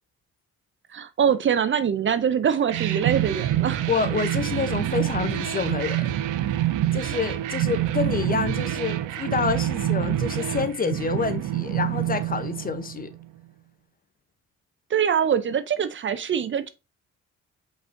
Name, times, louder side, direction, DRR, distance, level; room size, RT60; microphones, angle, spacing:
voice 1, 0.9-3.8 14.9-16.7, right 8 dB, 40° right, 0.5 m, -23 dB
sound 1, 2.7-13.2, right 13 dB, 85° right, 0.6 m, -26 dB
voice 2, 3.9-6.2 6.9-13.1, left 5 dB, 30° left, 0.7 m, -28 dB
5.2 x 4.0 x 2.6 m
cardioid pair, 90°, 30 cm